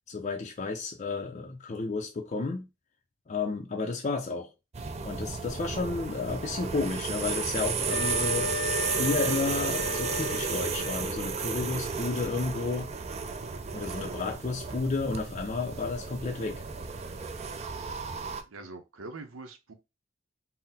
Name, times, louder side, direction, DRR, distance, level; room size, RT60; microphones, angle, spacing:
voice 1, 0.1-2.7 3.3-4.5 5.0-8.5 8.8-12.9 13.7-16.6, left 3 dB, 35° left, 0.4 m, -32 dB
sound 1, 4.7-18.4, right 5 dB, 35° right, 0.4 m, -33 dB
Wind instrument woodwind instrument, 7.9-11.1, left 5 dB, 65° right, 1.1 m, -35 dB
voice 2, 18.5-19.7, right 3 dB, 90° right, 0.7 m, -43 dB
3.9 x 2.0 x 4.0 m
head